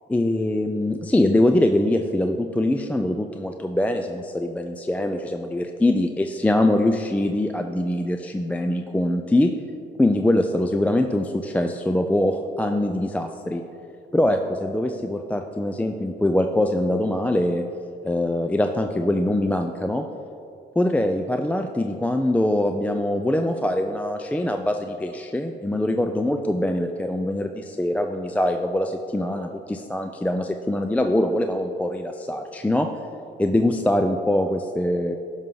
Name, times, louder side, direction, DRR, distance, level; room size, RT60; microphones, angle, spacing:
voice 1, 0.1-9.5 10.0-13.6 14.1-17.6 18.0-20.1 20.8-32.9 33.4-35.2, left 1 dB, 5° left, 5 dB, 0.3 m, -23 dB
10.5 x 5.6 x 3.8 m, 2.5 s
cardioid pair, 90°, 20 cm